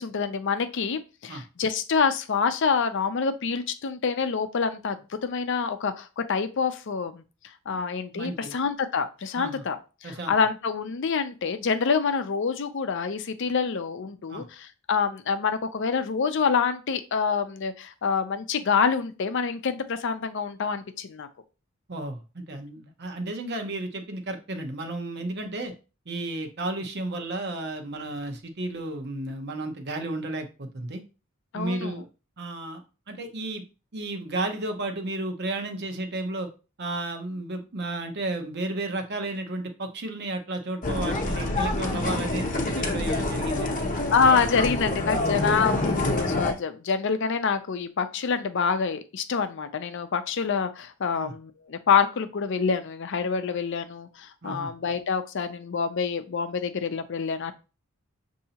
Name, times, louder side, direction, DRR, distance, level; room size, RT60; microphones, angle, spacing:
voice 1, 0.0-7.2 7.7-21.3 31.5-32.0 44.1-57.5, left 5 dB, 60° left, 9 dB, 0.5 m, -26 dB
voice 2, 8.1-8.5 9.3-9.6 10.0-10.3 14.3-14.5 21.9-25.7 26.1-31.0 31.5-32.1 32.4-32.8 33.1-33.6 33.9-36.5 36.8-43.9 51.1-51.3 54.4-54.7, right 2 dB, 50° right, 5 dB, 0.8 m, -33 dB
sound 1, 40.8-46.5, left 2 dB, 40° left, 0.8 m, -27 dB
6.6 x 2.7 x 2.8 m, 0.32 s
head